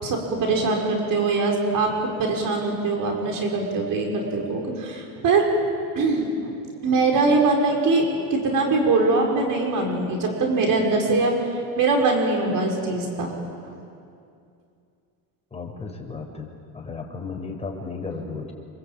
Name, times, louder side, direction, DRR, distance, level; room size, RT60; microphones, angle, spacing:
voice 1, 0.0-5.5 5.9-6.6 6.8-13.4 13.6-13.8, right 3 dB, 50° right, 1 dB, 5.7 m, -22 dB
voice 2, 15.5-16.5 16.7-18.5, left 4 dB, 15° left, 0 dB, 6.6 m, -34 dB
27.0 x 23.5 x 8.9 m, 2.4 s
supercardioid pair, 110°, 42 cm